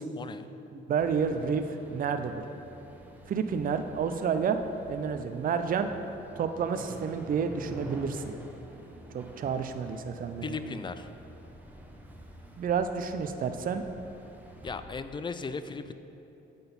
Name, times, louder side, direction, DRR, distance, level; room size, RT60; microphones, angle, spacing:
voice 1, 0.2-0.6 10.4-11.1 14.6-15.9, left 4 dB, 25° left, 11 dB, 0.3 m, -37 dB
voice 2, 0.7-2.3 3.3-4.6 4.9-5.9 6.4-8.3 9.1-10.6 12.6-13.8, right 6 dB, 45° right, 8 dB, 0.5 m, -30 dB
sound 1, 1.0-14.8, right 2 dB, 10° right, 0.8 m, -47 dB
8.8 x 4.0 x 5.4 m, 2.9 s
cardioid pair, 90°, 20 cm